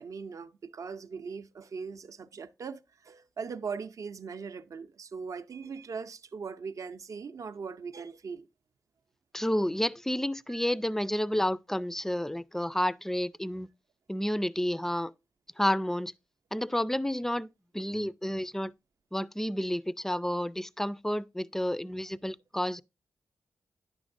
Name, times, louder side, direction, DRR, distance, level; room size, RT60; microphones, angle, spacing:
voice 1, 0.0-8.5 10.5-10.7, right 5 dB, 65° right, 0.5 m, -40 dB
voice 2, 9.3-13.7 14.1-15.1 15.6-16.1 16.5-17.5 17.7-18.7 19.1-22.8, left 1 dB, 5° left, 0.3 m, -30 dB
9.6 x 6.2 x 2.5 m
cardioid pair, 65°, 6 cm